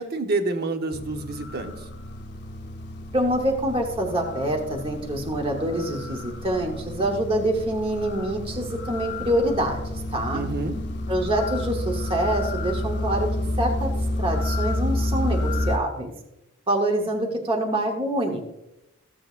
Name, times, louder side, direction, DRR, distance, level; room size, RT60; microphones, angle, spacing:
voice 1, 0.0-1.9 10.3-10.8, right 3 dB, 50° right, 6 dB, 0.9 m, -28 dB
sound 1, 0.9-15.8, left 1 dB, 55° left, 0.8 m, -30 dB
voice 2, 3.1-10.4 11.1-13.3 13.6-13.9 14.2-16.1 16.7-18.4, right 1 dB, 25° right, 1 dB, 1.0 m, -25 dB
14.5 x 7.5 x 2.5 m, 0.89 s
head